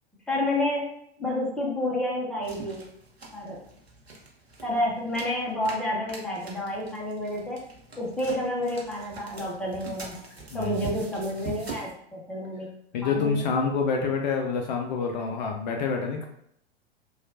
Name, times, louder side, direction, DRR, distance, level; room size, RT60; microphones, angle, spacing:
voice 1, 0.3-0.9 1.2-2.8 3.3-3.6 4.6-7.6 8.0-10.2 10.5-12.7 13.0-13.5, left 1 dB, 5° left, -4 dB, 0.6 m, -29 dB
sound 1, 2.4-11.9, right 2 dB, 85° right, 0.8 m, -43 dB
voice 2, 10.5-11.0 12.9-16.3, left 5 dB, 45° left, 2 dB, 0.4 m, -27 dB
3.1 x 2.3 x 2.6 m, 0.72 s
figure-of-eight pair, 95°, 31 cm